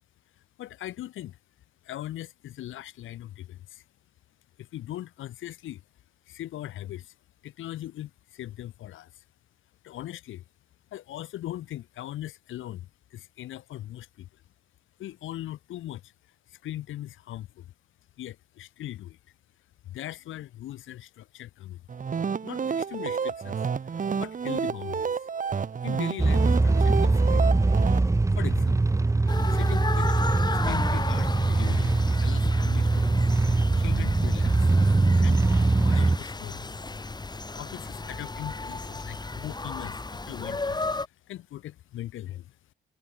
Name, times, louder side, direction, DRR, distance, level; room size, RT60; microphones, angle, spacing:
voice 1, 0.6-1.4 1.8-3.8 4.6-5.8 6.3-7.1 7.4-9.2 9.8-10.4 10.9-14.3 15.0-16.1 16.5-17.7 18.2-19.2 19.8-21.8 22.4-25.3 25.8-27.5 28.4-28.9 29.5-30.1 30.5-33.3 33.8-34.7 35.2-36.7 37.5-40.9 41.3-42.6, left 13 dB, 80° left, 4.6 m, -40 dB
sound 1, 21.9-28.0, right 6 dB, 40° right, 3.3 m, -30 dB
sound 2, 26.2-36.2, right 3 dB, 15° right, 1.0 m, -22 dB
sound 3, 29.3-41.1, left 3 dB, 20° left, 6.6 m, -34 dB
cardioid pair, 90°, 20 cm